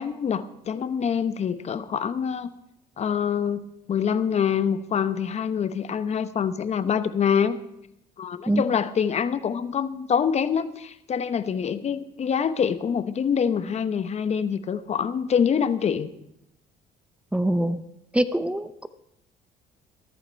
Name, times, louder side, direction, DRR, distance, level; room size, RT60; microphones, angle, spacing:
voice 1, 0.0-2.5 3.0-7.6 8.2-16.1, left 7 dB, 40° left, 12 dB, 0.9 m, -25 dB
voice 2, 17.3-17.8 18.1-18.9, right 1 dB, 5° right, 13 dB, 0.7 m, -24 dB
14.5 x 13.5 x 4.5 m, 0.81 s
cardioid pair, 110°, 17 cm